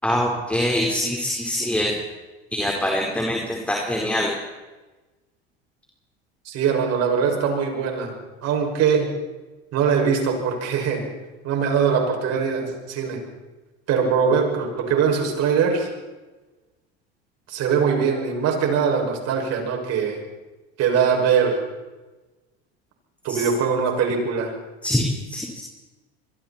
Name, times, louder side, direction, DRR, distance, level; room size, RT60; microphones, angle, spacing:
voice 1, 0.0-1.9 2.5-4.3 23.3-23.4 24.8-25.6, left 1 dB, 5° left, -1 dB, 4.7 m, -24 dB
voice 2, 6.5-8.1 8.4-9.1 9.7-11.0 11.4-13.2 13.9-15.9 17.5-20.2 20.8-21.6 23.2-24.5, right 6 dB, 50° right, 2 dB, 6.9 m, -22 dB
27.5 x 22.5 x 4.5 m, 1.2 s
hypercardioid pair, 95°, 32 cm